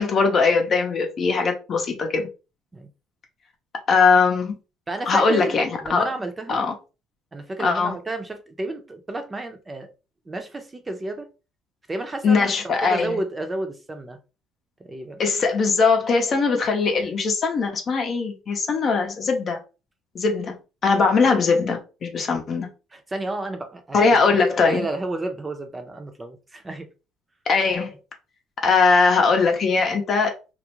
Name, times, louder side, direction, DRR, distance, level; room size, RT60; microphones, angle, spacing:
voice 1, 0.0-2.3 3.9-4.6 5.1-6.1 6.5-6.7 7.6-8.0 12.2-13.2 15.2-19.6 20.1-20.6 20.8-22.7 23.9-24.9 27.5-27.9 28.6-30.3, left 4 dB, 50° left, 0.7 m, -20 dB
voice 2, 4.9-6.6 7.3-9.9 10.3-11.3 11.9-14.2 14.8-15.2 22.9-26.9, right 2 dB, 25° right, 0.6 m, -31 dB
2.4 x 2.0 x 3.0 m
supercardioid pair, 75°, 0 cm